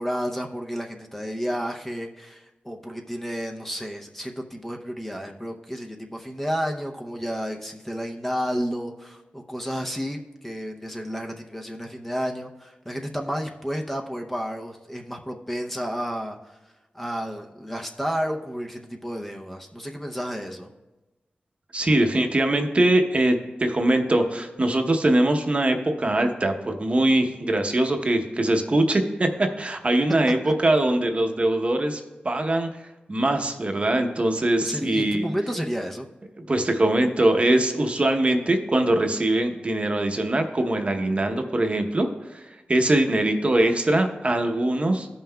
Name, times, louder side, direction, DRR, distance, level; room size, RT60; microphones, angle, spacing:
voice 1, 0.0-16.4 16.9-20.7 30.4-30.5 34.6-36.1, equal, 10° left, 2 dB, 0.6 m, -31 dB
voice 2, 21.7-32.7 33.1-35.3 36.4-45.1, right 1 dB, 35° right, 5 dB, 0.8 m, -22 dB
15.0 x 5.6 x 2.3 m, 1.1 s
wide cardioid pair, 75°, 3 cm